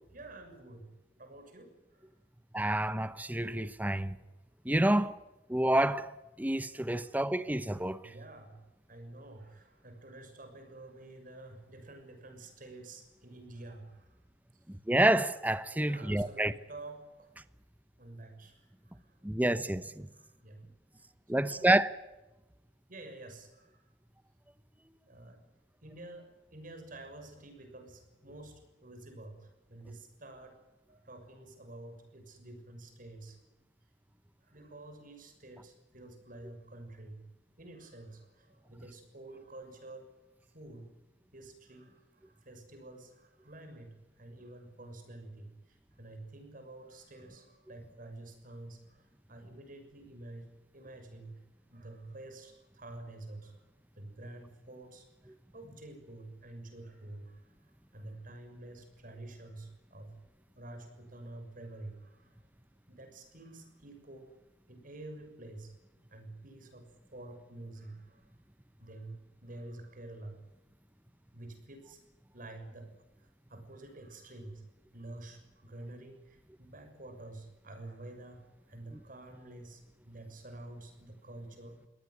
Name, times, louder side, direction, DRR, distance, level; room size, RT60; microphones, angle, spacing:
voice 1, 0.1-0.8 1.2-2.1 7.0-7.1 8.0-8.6 8.9-14.2 15.8-17.3 18.0-19.1 20.1-20.6 21.3-21.8 22.9-23.8 25.1-25.4 25.8-30.5 30.9-33.5 34.4-37.2 37.6-40.0 40.5-40.9 41.3-51.4 51.7-53.6 54.0-57.5 57.9-60.1 60.5-62.3 62.9-64.3 64.7-65.7 66.1-68.2 68.8-70.4 71.3-72.0 72.3-72.9 73.5-74.6 74.9-81.8, right 2 dB, 50° right, 6.6 m, -49 dB
voice 2, 2.5-4.1 4.6-5.2 5.5-6.1 6.4-8.0 14.9-16.5 19.2-20.1 21.3-21.9, right 1 dB, 10° right, 0.9 m, -28 dB
23.5 x 18.0 x 9.7 m
head